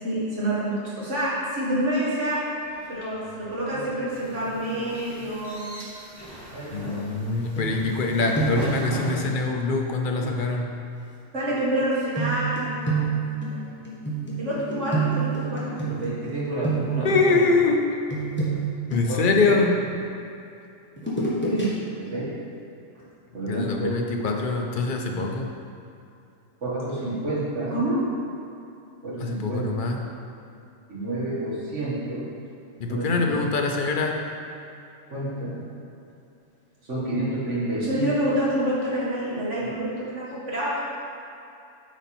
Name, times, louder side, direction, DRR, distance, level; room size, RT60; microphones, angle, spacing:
voice 1, 0.0-2.4 2.9-5.8 6.5-7.0 11.3-13.2 14.4-17.4 18.9-19.3 21.5-22.3 23.3-24.0 26.6-28.0 29.0-29.7 30.9-32.3 32.9-33.4 35.1-35.6 36.9-40.8, right 1 dB, 65° right, -8 dB, 2.2 m, -28 dB
sound 1, 2.6-9.3, equal, 20° right, 1.0 m, -38 dB
voice 2, 6.7-10.7 17.0-17.8 18.9-19.8 23.4-25.5 29.2-30.0 32.8-34.2, left 3 dB, 50° left, 2 dB, 0.7 m, -24 dB
sound 2, 7.6-8.1 8.3-8.8 10.2-10.4 12.2-16.3 16.6-17.2 18.1-19.9 21.0-21.7 22.0-22.2, right 4 dB, 10° left, 1.2 m, -28 dB
9.2 x 4.2 x 4.3 m, 2.7 s
omnidirectional pair, 1.3 m